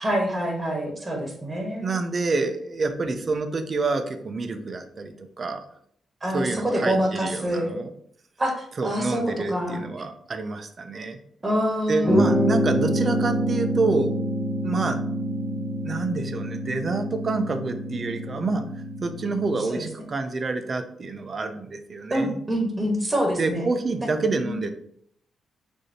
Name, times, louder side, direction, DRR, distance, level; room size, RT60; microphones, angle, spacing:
voice 1, 0.0-1.9 6.2-7.8 8.4-8.5 8.8-9.8 11.4-12.5 19.7-19.9 22.1-23.7 24.0-24.5, equal, 20° right, 1 dB, 1.2 m, -26 dB
voice 2, 1.8-5.6 6.3-7.9 8.8-11.2 11.9-14.2 14.6-15.0 15.8-22.3 23.4-24.7, right 3 dB, 40° right, 7 dB, 0.6 m, -27 dB
sound 1, 12.0-19.7, equal, 5° right, 0.9 m, -27 dB
6.5 x 2.7 x 2.8 m, 0.66 s
cardioid pair, 115°, 0 cm